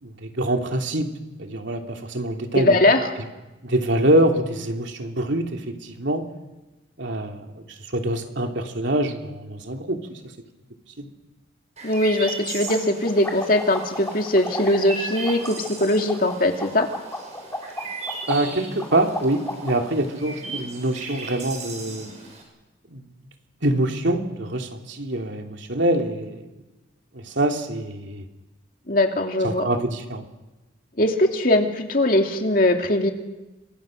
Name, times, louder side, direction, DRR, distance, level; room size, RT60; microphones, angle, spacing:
voice 1, 0.0-2.8 3.6-6.2 7.0-10.2 11.0-11.1 18.3-22.1 22.9-23.1 23.6-26.5 27.1-28.2 29.4-30.2, right 1 dB, 70° right, 3 dB, 2.9 m, -25 dB
voice 2, 2.5-3.0 11.8-16.9 28.9-29.7 31.0-33.1, left 1 dB, 45° left, 3 dB, 2.6 m, -20 dB
Chirp tweet, 11.8-22.4, right 3 dB, 35° right, 7.3 m, -37 dB
sound 1, 11.9-12.0 12.3-12.4 12.7-19.9, left 1 dB, 10° left, 4.0 m, -34 dB
29.5 x 26.0 x 6.5 m, 1.1 s
head